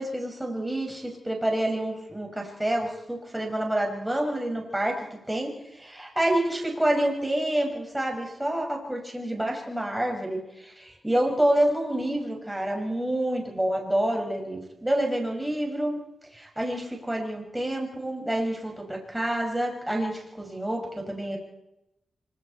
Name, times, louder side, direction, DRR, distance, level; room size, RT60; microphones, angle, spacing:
voice 1, 0.0-16.0 16.3-21.4, right 1 dB, 10° right, 1 dB, 6.0 m, -28 dB
25.5 x 24.0 x 4.4 m, 0.89 s
cardioid pair, 65°, 0 cm